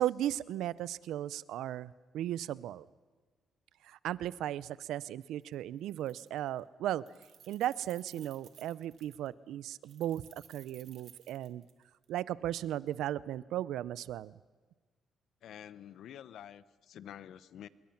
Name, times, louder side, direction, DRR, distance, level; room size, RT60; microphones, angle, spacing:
voice 1, 0.0-2.9 3.8-7.0 7.5-11.6 12.1-14.3, right 12 dB, 85° right, 19 dB, 0.6 m, -36 dB
Keys jangling, 5.4-5.5 5.8-6.6 6.9-9.3 9.8-12.1, right 9 dB, 65° right, 1.7 m, -58 dB
voice 2, 15.4-17.7, left 10 dB, 75° left, 16 dB, 0.8 m, -48 dB
27.0 x 22.5 x 5.9 m, 1.4 s
cardioid pair, 95°, 0 cm